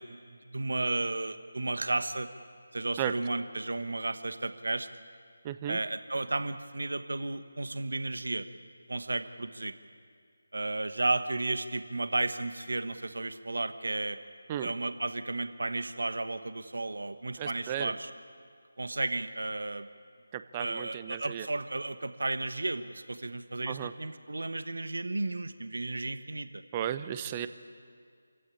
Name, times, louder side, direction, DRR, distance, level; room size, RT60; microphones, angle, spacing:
voice 1, 0.0-2.3 2.7-4.9 5.7-8.5 8.9-9.7 10.5-14.2 14.6-18.1 18.8-19.9 20.6-26.6, right 2 dB, 70° right, 11 dB, 1.3 m, -33 dB
voice 2, 5.4-5.8 14.5-14.7 17.4-17.9 20.3-21.5 23.7-23.9 26.7-27.5, right 11 dB, 20° right, 12 dB, 0.9 m, -34 dB
26.5 x 16.0 x 9.8 m, 2.2 s
figure-of-eight pair, 160°, 0 cm